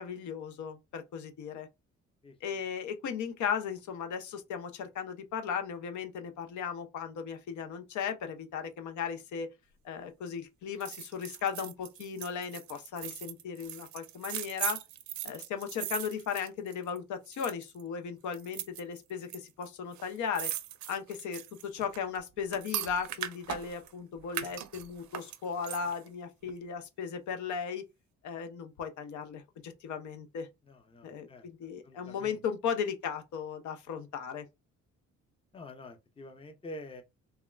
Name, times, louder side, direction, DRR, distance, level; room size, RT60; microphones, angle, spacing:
voice 1, 0.0-1.7 2.4-9.5 9.8-14.8 15.2-20.5 20.9-27.8 28.2-30.5 31.0-34.4, left 7 dB, 75° left, 0.7 m, -36 dB
voice 2, 2.2-2.6 30.7-31.5 31.8-32.4 35.5-37.0, left 1 dB, 20° left, 0.6 m, -47 dB
sound 1, 10.8-17.0 17.3-17.8 18.3-19.4 19.6-19.7 19.9-23.9 24.3-26.1 26.5-26.6, right 12 dB, 70° right, 0.5 m, -39 dB
3.5 x 2.2 x 2.2 m
cardioid pair, 90°, 30 cm